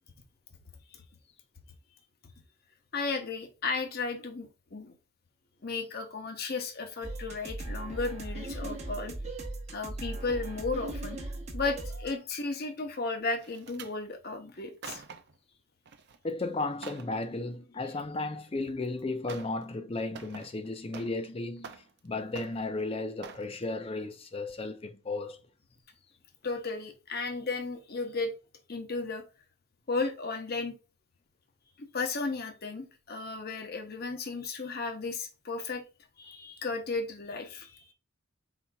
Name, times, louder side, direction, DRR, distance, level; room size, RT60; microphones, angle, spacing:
voice 1, 2.9-4.9 5.6-9.1 9.7-11.2 11.5-15.0 26.4-28.3 28.7-29.2 29.9-30.8 31.8-35.8 36.2-37.8, left 3 dB, 45° left, 0.8 m, -34 dB
sound 1, 7.0-12.1, right 2 dB, 30° right, 0.9 m, -38 dB
sound 2, 13.4-13.9 14.6-15.4 15.8-16.2 16.5-17.1 18.5-18.6 19.3-19.6 19.9-21.3 21.6-22.1 22.3-22.8 23.2-23.5 24.0-24.2 24.5-24.6, right 5 dB, 50° right, 0.5 m, -47 dB
voice 2, 16.2-25.4, left 2 dB, 25° left, 0.4 m, -34 dB
4.4 x 4.1 x 2.3 m
head